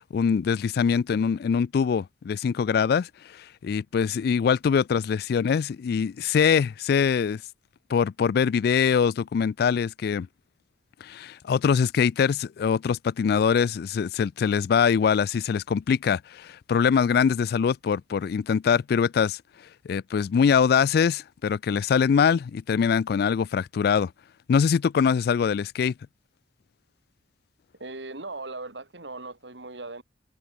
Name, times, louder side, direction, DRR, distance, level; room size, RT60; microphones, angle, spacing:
voice 1, 0.0-7.4 7.9-10.3 11.0-19.4 19.9-24.1 24.5-25.9, left 6 dB, 60° left, 0.3 m, -23 dB
voice 2, 27.8-30.0, right 3 dB, 75° right, 2.7 m, -38 dB
head